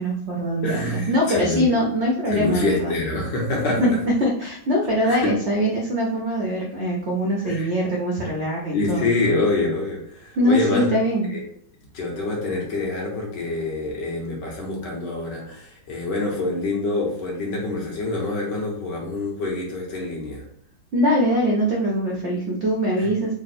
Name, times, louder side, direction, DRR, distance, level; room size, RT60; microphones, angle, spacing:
voice 1, 0.0-2.9 3.8-3.9 4.2-9.1 10.4-11.3 20.9-23.3, equal, 75° right, -2 dB, 0.6 m, -22 dB
voice 2, 0.6-1.6 2.3-3.8 5.0-5.4 7.4-7.7 8.7-10.9 11.3-11.4 11.9-20.4 23.0-23.1, left 2 dB, 70° left, -2 dB, 1.6 m, -26 dB
3.8 x 2.0 x 4.1 m, 0.64 s
omnidirectional pair, 2.1 m